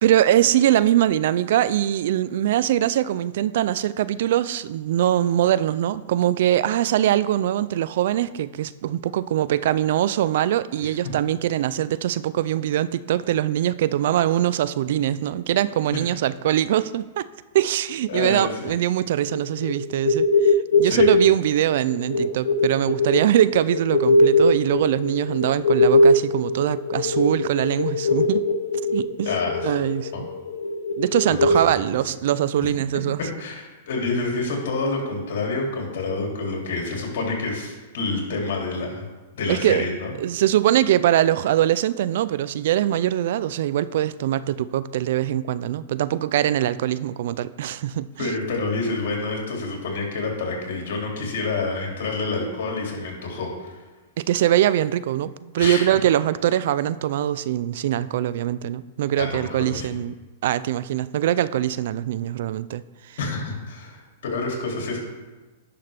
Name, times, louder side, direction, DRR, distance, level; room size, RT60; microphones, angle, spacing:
voice 1, 0.0-17.3 17.5-28.4 28.9-29.4 29.6-30.3 31.0-33.2 39.5-39.8 40.2-48.3 54.2-60.2 60.4-62.8 63.1-63.2, right 12 dB, 65° right, 17 dB, 0.3 m, -22 dB
voice 2, 18.1-18.7 20.8-21.1 29.2-29.7 30.1-30.2 31.3-31.5 33.4-39.1 39.3-40.1 48.2-53.8 55.6-55.9 59.2-60.0 63.2-64.0 64.3-65.0, left 3 dB, 70° left, 0 dB, 2.6 m, -28 dB
sound 1, 19.3-31.7, left 2 dB, 90° left, 0.6 m, -21 dB
11.0 x 5.7 x 3.4 m, 1.2 s
hypercardioid pair, 130°, 0 cm